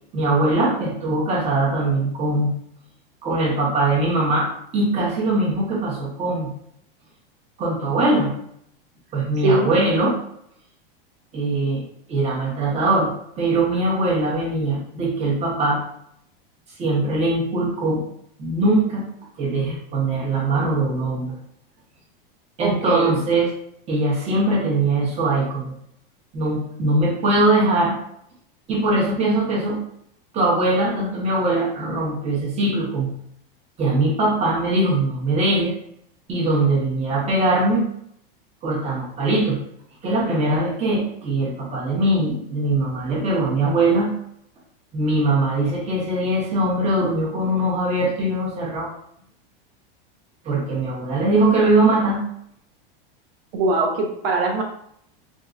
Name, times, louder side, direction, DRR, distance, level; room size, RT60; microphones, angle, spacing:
voice 1, 0.1-2.5 3.2-6.5 7.6-8.3 9.1-10.1 11.3-11.8 12.1-13.1 13.4-15.8 16.8-18.0 18.4-19.0 19.4-21.3 22.6-23.5 23.9-25.7 26.3-28.0 28.7-29.8 30.3-33.1 33.8-35.7 36.3-37.8 38.6-39.6 40.0-44.1 44.9-48.9 50.4-52.2, right 2 dB, 20° right, -4 dB, 1.0 m, -21 dB
voice 2, 22.6-23.1 53.5-54.6, right 2 dB, 75° right, 1 dB, 0.8 m, -21 dB
3.6 x 2.6 x 2.5 m, 0.72 s
supercardioid pair, 150°, 29 cm